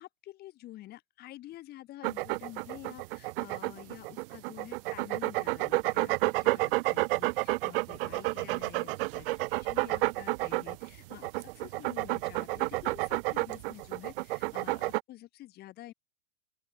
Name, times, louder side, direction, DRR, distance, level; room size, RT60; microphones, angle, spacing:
voice 1, 0.0-6.1 6.4-15.9, left 15 dB, 30° left, 1.6 m, -49 dB
sound 1, 2.0-15.0, right 22 dB, 55° right, 0.5 m, -30 dB
open air
supercardioid pair, 150°, 33 cm